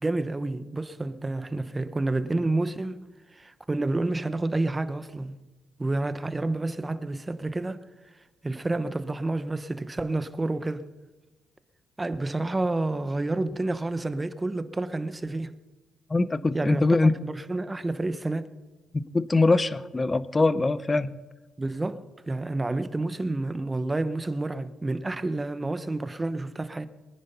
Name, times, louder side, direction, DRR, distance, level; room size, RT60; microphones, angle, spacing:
voice 1, 0.0-3.1 3.3-5.3 5.8-7.8 8.4-10.9 12.0-15.6 16.5-16.8 17.2-18.5 21.6-26.9, right 2 dB, 20° right, 1.0 m, -29 dB
voice 2, 16.1-17.1 19.1-21.2, left 3 dB, 25° left, 0.8 m, -22 dB
22.0 x 10.0 x 5.6 m
cardioid pair, 90°, 0 cm